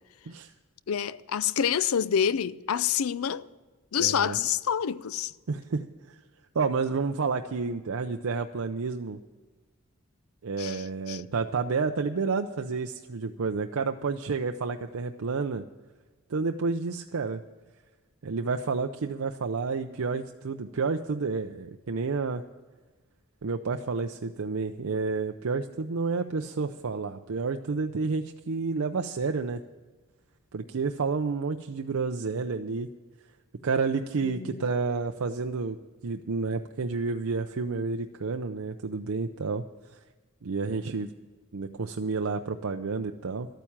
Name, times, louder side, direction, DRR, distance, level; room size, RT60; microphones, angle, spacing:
voice 1, 0.9-3.5 3.9-5.3 10.6-11.2 34.2-34.7, left 8 dB, 80° left, 0.5 m, -27 dB
voice 2, 4.0-4.4 5.5-6.2 6.5-9.2 10.4-15.6 16.3-17.4 18.2-22.4 23.4-29.6 30.5-32.9 33.6-35.8 36.0-39.6 39.9-40.0 40.4-41.1 41.5-43.5, right 4 dB, 75° right, 0.6 m, -30 dB
12.5 x 9.2 x 7.2 m
head